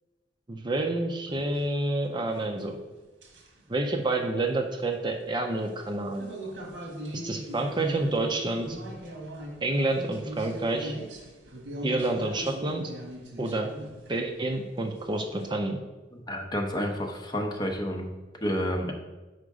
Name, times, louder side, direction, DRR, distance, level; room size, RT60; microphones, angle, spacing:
voice 1, 0.5-2.8 3.7-6.2 7.2-8.8 9.6-10.9 11.8-12.8 13.4-13.7 14.1-15.8, right 2 dB, 25° right, 3 dB, 0.6 m, -28 dB
sound 1, 1.3-1.7 3.2-3.6 5.8-14.5 15.0-15.5, equal, 75° right, 1.5 m, -40 dB
voice 2, 16.1-18.1 18.4-18.9, equal, 25° left, 2 dB, 0.9 m, -30 dB
6.5 x 4.9 x 4.9 m, 1.2 s
head